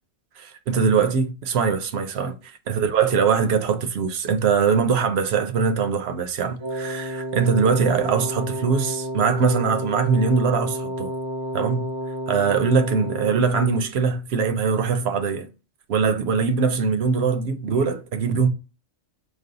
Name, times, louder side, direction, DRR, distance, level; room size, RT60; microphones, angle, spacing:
voice 1, 0.7-11.1 11.5-11.9 12.3-15.5 15.9-18.5, right 5 dB, 60° right, 0.8 m, -22 dB
Wind instrument woodwind instrument, 6.6-13.9, equal, 40° right, 0.4 m, -31 dB
5.3 x 2.0 x 3.8 m
omnidirectional pair, 1.4 m